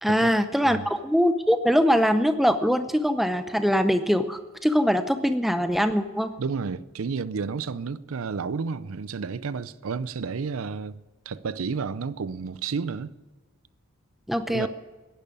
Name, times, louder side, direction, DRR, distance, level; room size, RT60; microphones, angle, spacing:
voice 1, 0.0-6.3 14.3-14.7, equal, ahead, 0.6 m, -22 dB
voice 2, 6.4-11.0 11.3-13.1 14.5-14.7, right 5 dB, 75° right, 0.5 m, -31 dB
11.0 x 11.0 x 8.5 m
head